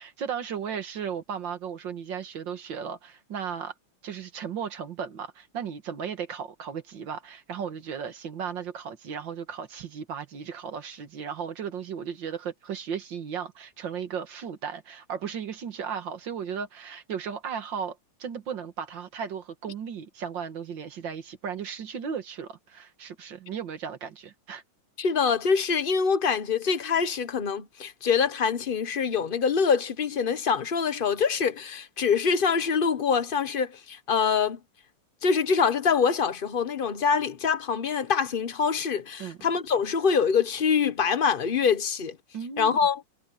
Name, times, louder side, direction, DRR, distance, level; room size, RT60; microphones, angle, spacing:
voice 1, 0.0-3.7 4.0-24.6 39.2-39.4 42.3-42.8, right 7 dB, 60° right, 2.1 m, -35 dB
voice 2, 25.0-34.6 35.2-42.2 42.6-43.0, left 6 dB, 35° left, 0.8 m, -25 dB
omnidirectional pair, 2.4 m